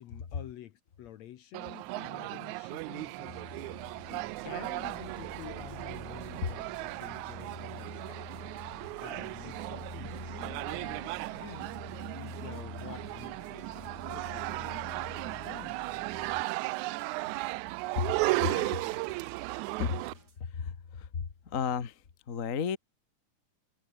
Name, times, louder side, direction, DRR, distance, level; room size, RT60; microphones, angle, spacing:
voice 1, 0.0-3.6 4.0-8.3 9.0-11.7 12.1-15.8, left 12 dB, 65° left, 2.0 m, -49 dB
sound 1, 1.5-20.1, right 21 dB, 80° right, 1.7 m, -36 dB
sound 2, 3.2-16.4, left 3 dB, 20° left, 1.4 m, -47 dB
sound 3, 3.6-20.4, right 4 dB, 30° right, 3.3 m, -61 dB
voice 2, 17.9-19.0 19.8-20.0 20.4-22.8, left 6 dB, 40° left, 1.2 m, -34 dB
omnidirectional pair, 3.8 m